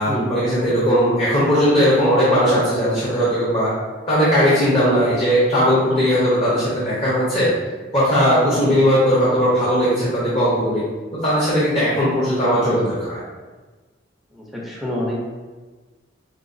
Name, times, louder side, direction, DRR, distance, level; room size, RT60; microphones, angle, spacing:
voice 1, 0.0-3.7 4.1-7.5 7.9-10.8 11.1-13.2, equal, 30° left, -9 dB, 0.8 m, -18 dB
voice 2, 8.5-8.8 14.3-15.2, left 1 dB, ahead, -5 dB, 0.6 m, -27 dB
4.7 x 2.3 x 2.6 m, 1.3 s
head